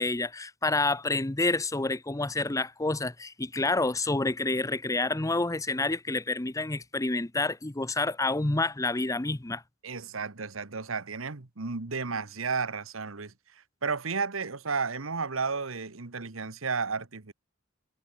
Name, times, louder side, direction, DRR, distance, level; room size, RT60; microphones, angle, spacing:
voice 1, 0.0-9.6, left 2 dB, 15° left, 0.8 m, -28 dB
voice 2, 9.8-13.3 13.8-17.3, right 4 dB, 90° right, 1.4 m, -32 dB
head